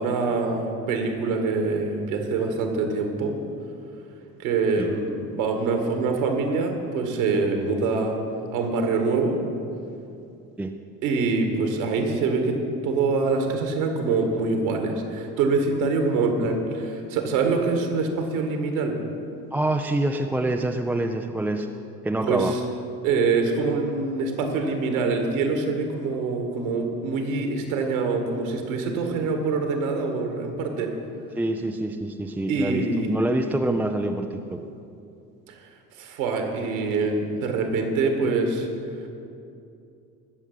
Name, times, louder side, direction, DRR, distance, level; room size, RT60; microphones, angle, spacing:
voice 1, 0.0-3.4 4.4-8.2 8.5-9.4 11.0-12.6 12.8-19.0 22.2-22.6 23.0-30.9 32.5-33.1 35.5-35.6 36.0-38.7, right 4 dB, 65° right, 4 dB, 1.9 m, -25 dB
voice 2, 19.5-21.7 22.0-22.5 31.4-34.6, right 1 dB, 5° right, 3 dB, 0.3 m, -26 dB
19.0 x 7.1 x 5.6 m, 2.6 s
figure-of-eight pair, 55°, 45 cm